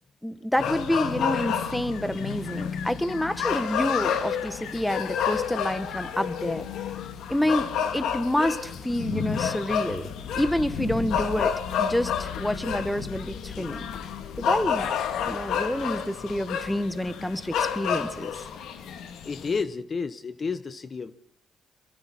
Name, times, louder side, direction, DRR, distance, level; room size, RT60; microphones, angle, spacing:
voice 1, 0.2-6.7 7.3-7.7 7.9-10.1 10.3-13.8 14.4-14.9 15.2-18.3, left 1 dB, 5° left, 12 dB, 1.5 m, -28 dB
sound 1, 0.6-19.6, left 7 dB, 80° left, 1.9 m, -30 dB
voice 2, 19.3-21.1, left 5 dB, 40° left, 13 dB, 0.9 m, -31 dB
28.0 x 22.5 x 4.4 m, 0.66 s
cardioid pair, 90°, 0 cm